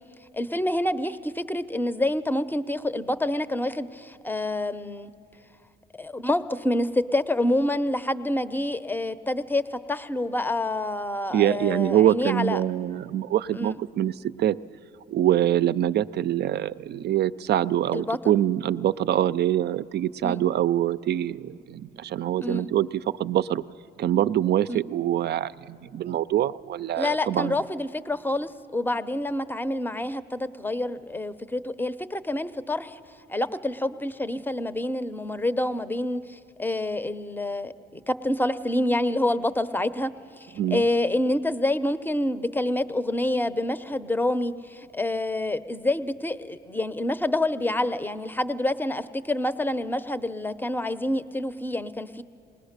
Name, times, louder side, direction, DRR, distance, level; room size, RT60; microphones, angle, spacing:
voice 1, 0.3-5.1 6.0-12.6 13.5-13.8 17.9-18.4 20.2-20.4 22.4-22.7 24.7-24.8 27.0-33.0 33.3-37.7 38.1-40.1 40.4-52.2, left 1 dB, 10° left, 13 dB, 0.6 m, -27 dB
voice 2, 11.3-14.6 15.1-23.6 24.0-27.6 40.6-40.8, right 11 dB, 55° right, 15 dB, 0.4 m, -24 dB
20.0 x 19.5 x 6.6 m, 2.5 s
cardioid pair, 90°, 20 cm